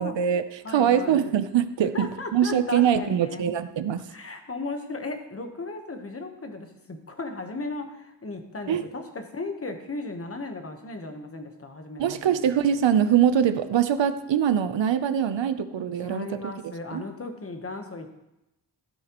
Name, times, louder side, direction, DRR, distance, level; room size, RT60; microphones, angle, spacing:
voice 1, 0.0-2.1 2.3-4.0 8.7-8.8 12.0-16.4 16.9-17.0, right 9 dB, 85° right, 11 dB, 0.7 m, -23 dB
voice 2, 0.6-1.2 1.9-3.4 4.1-12.2 16.0-18.2, left 3 dB, 30° left, 6 dB, 1.1 m, -36 dB
13.0 x 12.0 x 3.0 m, 0.92 s
wide cardioid pair, 170°, 43 cm